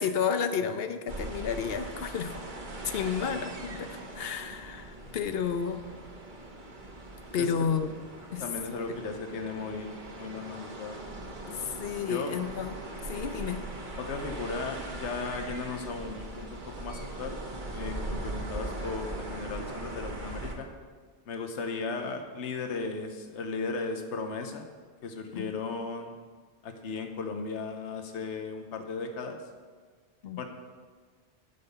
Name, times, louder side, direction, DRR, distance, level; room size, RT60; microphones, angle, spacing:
voice 1, 0.0-2.3 2.8-5.8 7.3-7.9 8.3-8.5 8.9-9.0 11.5-13.6 25.3-25.5 30.2-30.5, left 7 dB, 60° left, 9 dB, 0.9 m, -31 dB
sound 1, 1.1-20.6, right 2 dB, 45° right, 1.3 m, -40 dB
voice 2, 8.4-9.9 10.2-11.4 12.0-12.3 14.0-17.4 17.7-20.7 21.3-24.7 25.0-26.2 26.6-29.4 30.4-30.5, left 4 dB, 80° left, 5 dB, 1.2 m, -36 dB
12.0 x 5.5 x 6.7 m, 1.6 s
omnidirectional pair, 1.2 m